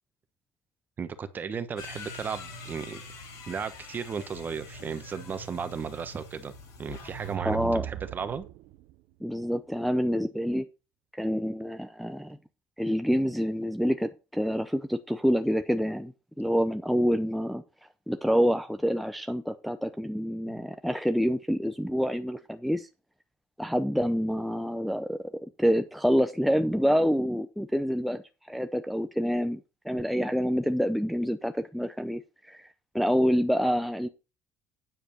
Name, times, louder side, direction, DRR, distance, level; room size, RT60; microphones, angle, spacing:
voice 1, 1.0-3.0 3.5-6.5 6.8-8.5 20.5-20.6, right 6 dB, 30° right, 1.1 m, -35 dB
sound 1, 1.8-7.4, left 2 dB, 75° left, 4.3 m, -44 dB
sound 2, 7.0-8.9, right 14 dB, 80° right, 0.6 m, -38 dB
voice 2, 7.4-7.9 9.2-10.6 11.1-12.4 12.8-17.6 18.1-22.9 23.6-28.2 28.5-32.7 32.9-34.1, equal, ahead, 0.6 m, -27 dB
9.0 x 5.1 x 6.4 m
cardioid pair, 125°, 6 cm